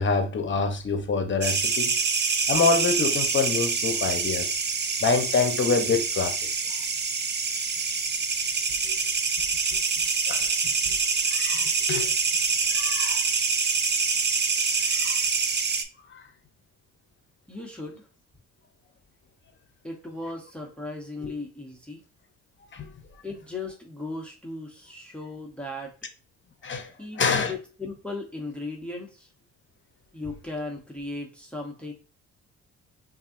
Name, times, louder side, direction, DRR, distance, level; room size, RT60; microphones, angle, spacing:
voice 1, 0.0-2.0 2.5-4.5 5.0-6.4 8.8-8.9 10.3-10.5 10.9-11.0 11.3-12.1 12.7-13.2 14.9-15.2 16.1-16.2 21.2-21.3 22.7-22.9 26.6-27.5, left 4 dB, 40° left, 0.9 m, -26 dB
sound 1, 1.4-15.8, right 5 dB, 35° right, 0.7 m, -26 dB
voice 2, 17.5-18.1 19.8-22.0 23.2-25.9 26.8-29.3 30.1-31.9, left 2 dB, 5° left, 1.0 m, -37 dB
5.5 x 2.7 x 2.6 m
cardioid pair, 90°, 30 cm